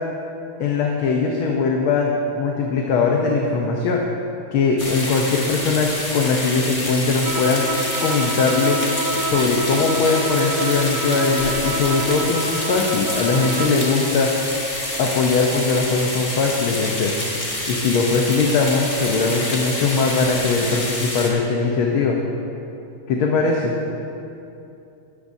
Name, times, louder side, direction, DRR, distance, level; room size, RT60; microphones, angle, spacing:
voice 1, 0.6-4.0 4.5-7.6 8.0-8.8 9.2-14.3 15.0-17.1 17.7-22.2 23.1-23.7, left 4 dB, 75° left, 0 dB, 1.8 m, -20 dB
sound 1, 4.8-21.3, left 1 dB, 25° left, 1.8 m, -27 dB
Bowed string instrument, 7.2-13.9, right 2 dB, 50° right, 0.6 m, -28 dB
19.0 x 13.5 x 2.7 m, 2.8 s
omnidirectional pair, 2.4 m